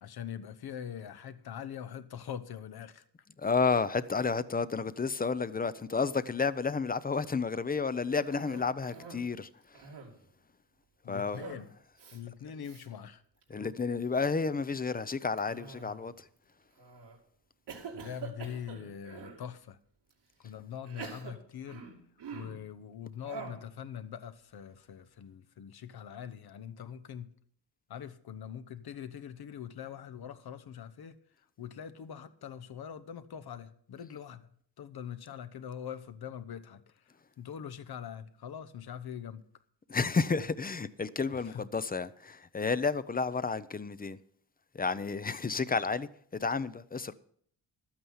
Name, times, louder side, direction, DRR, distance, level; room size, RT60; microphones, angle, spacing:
voice 1, 0.0-3.0 11.0-11.7 12.1-13.2 17.9-19.8 20.4-21.8 22.3-27.3 27.9-31.2 31.6-34.5 34.8-37.0 37.4-39.4 41.3-41.6, left 8 dB, 70° left, 1.0 m, -43 dB
voice 2, 3.4-9.9 11.1-11.4 13.5-16.3 39.9-44.2 44.7-47.1, left 4 dB, 25° left, 0.5 m, -31 dB
Cough, 8.1-9.3 9.6-10.3 11.3-11.7 12.0-12.2 12.6-12.9 13.4-13.8 15.4-16.2 16.8-17.2 17.7-19.4 20.1-20.2 20.8-22.6 23.2-23.7, right 5 dB, 85° right, 2.5 m, -46 dB
12.5 x 8.8 x 5.6 m
cardioid pair, 95°, 39 cm